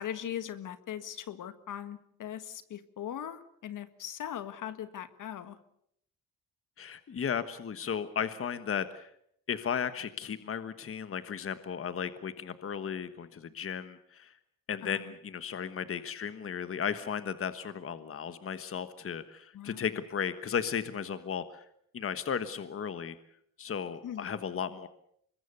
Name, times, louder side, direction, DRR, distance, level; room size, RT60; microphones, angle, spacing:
voice 1, 0.0-5.6 14.8-15.0 19.5-19.8 24.0-24.3, left 10 dB, 65° left, 11 dB, 1.7 m, -40 dB
voice 2, 6.8-9.1 9.5-14.4 14.7-21.6 21.9-23.2 23.6-24.9, left 7 dB, 40° left, 11 dB, 1.3 m, -35 dB
25.0 x 21.5 x 6.8 m, 0.71 s
cardioid pair, 90°, 34 cm